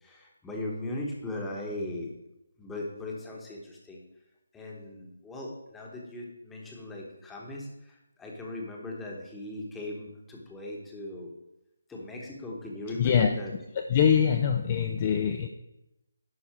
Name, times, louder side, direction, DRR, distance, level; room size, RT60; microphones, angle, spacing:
voice 1, 0.0-2.1 2.6-4.0 4.5-11.3 11.9-13.5, left 1 dB, 5° left, -1 dB, 1.2 m, -38 dB
voice 2, 12.9-13.3 13.7-15.5, left 8 dB, 25° left, 5 dB, 0.5 m, -24 dB
11.0 x 4.1 x 7.3 m, 0.90 s
hypercardioid pair, 175°, 0 cm